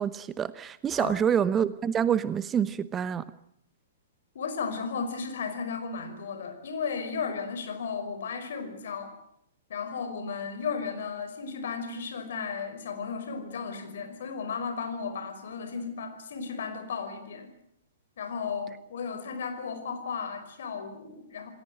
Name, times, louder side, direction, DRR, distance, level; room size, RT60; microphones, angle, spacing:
voice 1, 0.0-3.2, right 8 dB, 20° right, 16 dB, 1.0 m, -27 dB
voice 2, 4.3-9.1 9.7-17.5 18.2-21.5, left 5 dB, 55° left, 8 dB, 5.6 m, -34 dB
28.5 x 20.0 x 7.8 m, 0.72 s
figure-of-eight pair, 110°, 0 cm